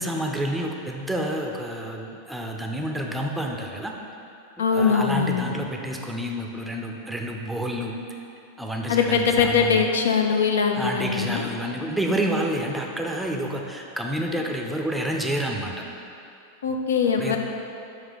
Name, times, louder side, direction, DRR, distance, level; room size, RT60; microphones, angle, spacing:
voice 1, 0.0-3.9 4.7-8.0 8.6-9.9 10.7-15.7 17.2-17.4, right 1 dB, 5° right, 1 dB, 0.5 m, -29 dB
voice 2, 4.6-5.6 8.9-11.5 16.6-17.4, left 6 dB, 65° left, 3 dB, 0.5 m, -22 dB
7.1 x 2.8 x 5.5 m, 2.7 s
figure-of-eight pair, 90°, 0 cm